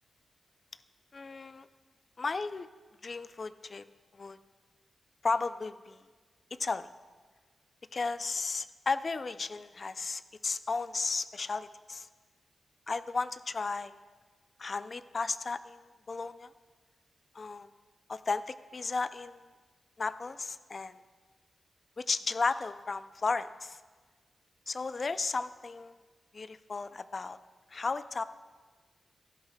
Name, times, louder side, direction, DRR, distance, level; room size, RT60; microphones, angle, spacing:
voice 1, 1.1-1.7 2.2-2.7 3.0-3.8 4.1-4.4 5.2-6.0 6.6-6.9 7.9-12.1 12.9-14.0 14.6-16.5 17.3-17.7 18.1-19.5 20.0-21.0 22.0-23.8 24.7-26.0 26.3-27.4 27.7-28.2, left 4 dB, 40° left, 13 dB, 0.3 m, -34 dB
16.0 x 13.5 x 2.2 m, 1.4 s
wide cardioid pair, 145°, 0 cm